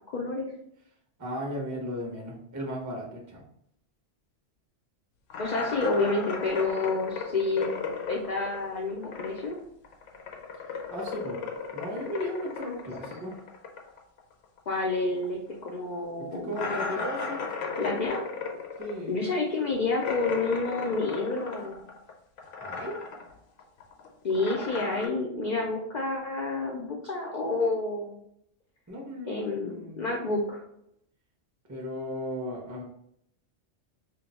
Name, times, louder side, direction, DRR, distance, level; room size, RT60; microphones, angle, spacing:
voice 1, 0.1-0.5 5.4-7.7 8.1-9.6 14.7-16.5 17.8-18.2 19.1-21.8 24.2-28.2 29.3-30.6, left 3 dB, 60° left, 0 dB, 0.4 m, -29 dB
voice 2, 1.2-3.4 10.9-11.4 11.7-13.3 16.2-17.5 18.8-19.2 22.6-23.0 28.9-30.0 31.7-32.8, equal, 20° right, -1 dB, 0.5 m, -35 dB
sound 1, 5.3-9.6 9.8-14.9 15.2-15.3 15.7-15.8 16.5-22.1 22.4-23.3 23.6-25.1, left 5 dB, 85° left, 0.9 m, -36 dB
2.5 x 2.2 x 4.0 m, 0.73 s
omnidirectional pair, 1.2 m